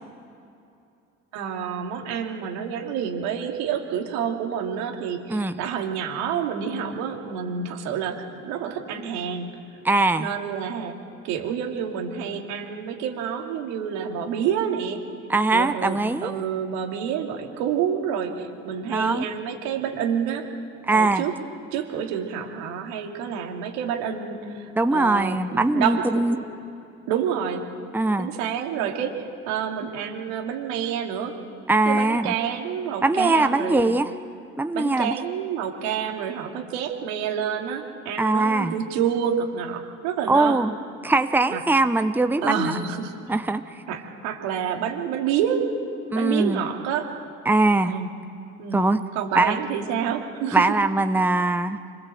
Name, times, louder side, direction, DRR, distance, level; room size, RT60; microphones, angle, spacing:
voice 1, 1.3-9.5 10.2-10.9 11.2-15.0 15.5-20.5 20.9-21.3 21.7-25.4 25.7-26.2 27.1-27.7 28.2-31.3 31.9-33.9 34.7-40.6 41.5-41.6 42.4-43.3 43.9-45.6 46.1-47.1 47.8-48.1 48.6-48.9 49.1-50.7, right 8 dB, 75° right, 2 dB, 2.9 m, -28 dB
voice 2, 5.3-5.6 9.8-10.3 15.3-16.3 18.8-19.2 20.9-21.3 24.7-26.4 27.9-28.3 31.7-32.3 33.0-34.1 34.6-35.2 38.2-38.7 40.3-40.7 41.0-42.8 43.3-43.8 46.1-46.6 47.4-47.9 48.7-49.0 49.3-49.6 50.5-51.8, right 2 dB, 5° right, 9 dB, 1.0 m, -21 dB
25.5 x 20.5 x 7.9 m, 2.7 s
hypercardioid pair, 60°, 37 cm